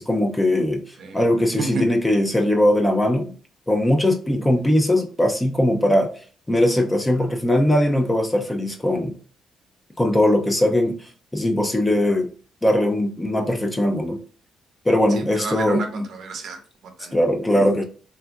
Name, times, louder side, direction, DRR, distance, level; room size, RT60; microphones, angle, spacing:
voice 1, 0.0-0.8 1.1-3.3 3.7-6.1 6.5-9.1 10.0-11.0 11.3-12.3 12.6-14.2 14.8-15.8 17.1-17.8, left 1 dB, 15° left, 3 dB, 0.7 m, -20 dB
voice 2, 1.5-1.8 15.2-17.2 17.5-17.7, right 2 dB, 65° right, 5 dB, 0.7 m, -30 dB
3.4 x 2.5 x 2.3 m, 0.40 s
cardioid pair, 90°, 0 cm